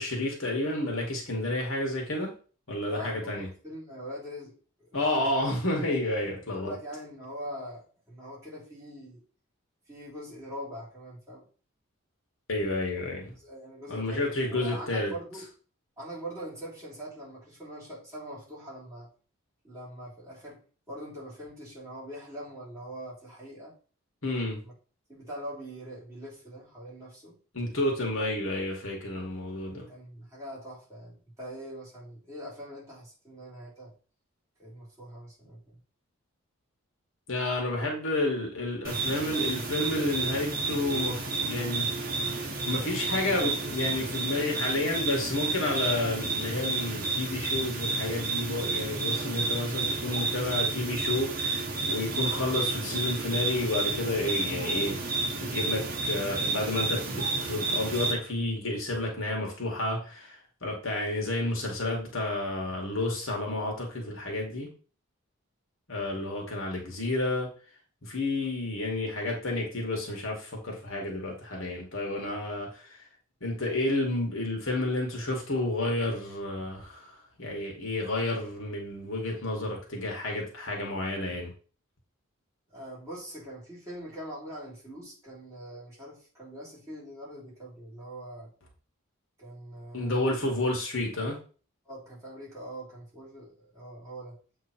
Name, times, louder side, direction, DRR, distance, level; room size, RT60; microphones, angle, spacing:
voice 1, 0.0-2.3 2.7-3.5 4.9-6.7 12.5-13.3 13.9-15.1 24.2-24.6 27.5-29.9 37.3-41.9 42.2-55.0 55.4-64.7 65.9-67.5 68.0-72.9 73.4-77.1 77.4-81.5 89.9-91.4, left 2 dB, 70° left, 2.1 m, -30 dB
voice 2, 2.9-5.3 6.6-9.2 9.9-11.4 13.4-15.5 16.0-19.1 19.6-23.7 24.6-24.7 25.1-27.4 29.9-33.9 34.6-35.8 82.7-88.5 89.4-90.4 91.9-94.4, equal, 15° right, 3.8 m, -43 dB
sound 1, 38.8-58.1, right 3 dB, 40° right, 1.6 m, -31 dB
7.9 x 3.8 x 4.4 m
head